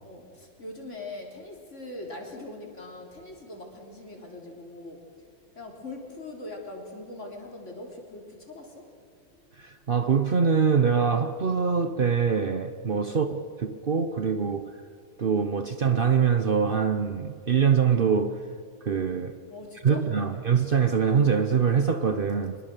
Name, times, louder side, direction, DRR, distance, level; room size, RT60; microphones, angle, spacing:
voice 1, 0.0-5.0 5.6-8.9 13.1-13.2 19.5-20.4, left 2 dB, 35° left, 3.8 m, -41 dB
voice 2, 9.6-14.8 15.2-18.4 18.8-19.4 19.8-22.6, right 6 dB, 85° right, 0.4 m, -24 dB
24.5 x 21.5 x 6.7 m
omnidirectional pair, 2.2 m